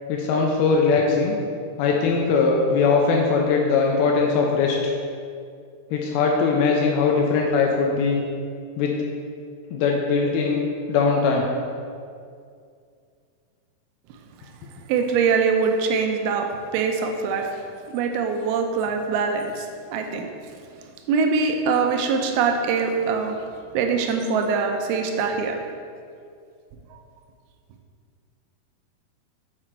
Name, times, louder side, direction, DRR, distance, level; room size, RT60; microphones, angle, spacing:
voice 1, 0.1-1.4 1.8-4.9 5.9-8.2 8.8-9.0 9.7-10.6 10.9-11.5, left 4 dB, 85° left, 0 dB, 2.6 m, -20 dB
voice 2, 14.9-17.6 17.9-20.3 21.1-23.4 23.7-25.6 26.9-27.0, right 5 dB, 90° right, 4 dB, 2.5 m, -23 dB
7.6 x 4.9 x 4.4 m, 2.3 s
omnidirectional pair, 4.3 m